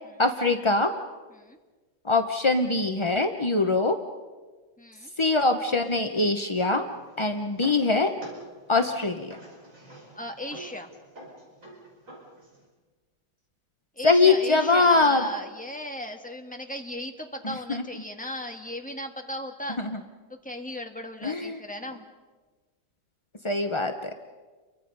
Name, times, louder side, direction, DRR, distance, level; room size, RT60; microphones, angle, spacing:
voice 1, 0.2-0.9 2.0-4.0 5.2-6.9 7.2-8.1 8.7-9.4 14.0-15.3 17.4-17.8 19.8-20.0 21.2-21.6 23.4-24.1, left 3 dB, 35° left, 6 dB, 0.4 m, -23 dB
voice 2, 4.8-5.1 10.1-10.9 13.9-19.8 20.3-22.0, left 1 dB, 5° left, 3 dB, 1.5 m, -36 dB
sound 1, 6.8-12.6, right 2 dB, 40° right, 5.6 m, -47 dB
30.0 x 23.5 x 5.4 m, 1.4 s
omnidirectional pair, 2.0 m